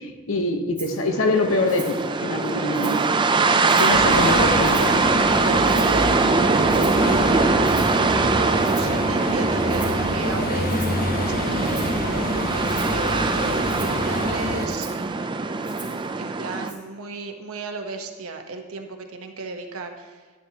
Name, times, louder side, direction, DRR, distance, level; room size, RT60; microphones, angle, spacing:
voice 1, 0.0-3.2 3.8-5.1, left 2 dB, 65° left, 5 dB, 1.0 m, -24 dB
Rattle (instrument), 0.8-1.0 1.7-2.0 2.4-3.1 3.6-4.0 4.6-5.0 5.7-6.1 6.7-7.1 7.6-8.0 8.6-9.0 9.7-10.0 10.7-11.1 11.6-12.0 12.6-13.0 13.7-14.0 14.7-15.0 15.6-16.1 16.7-16.8, right 3 dB, 5° right, 2.2 m, -41 dB
sound 1, 1.0-16.7, right 4 dB, 20° right, 0.4 m, -22 dB
sound 2, 3.9-14.7, left 1 dB, 45° left, 1.0 m, -27 dB
voice 2, 5.4-7.8 8.3-14.9 16.2-20.2, right 3 dB, 80° right, 4 dB, 1.0 m, -34 dB
12.0 x 10.0 x 2.9 m, 1.4 s
head